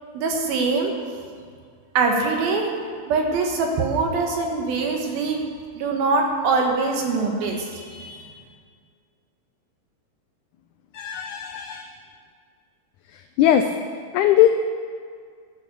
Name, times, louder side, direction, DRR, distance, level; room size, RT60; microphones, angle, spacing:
voice 1, 0.1-0.9 1.9-2.7 3.1-5.4 5.8-8.3, right 4 dB, 85° right, 2 dB, 3.3 m, -23 dB
voice 2, 10.9-11.9 13.4-13.7 14.1-14.5, left 11 dB, 85° left, 6 dB, 1.7 m, -19 dB
12.5 x 9.3 x 6.8 m, 2.1 s
omnidirectional pair, 4.2 m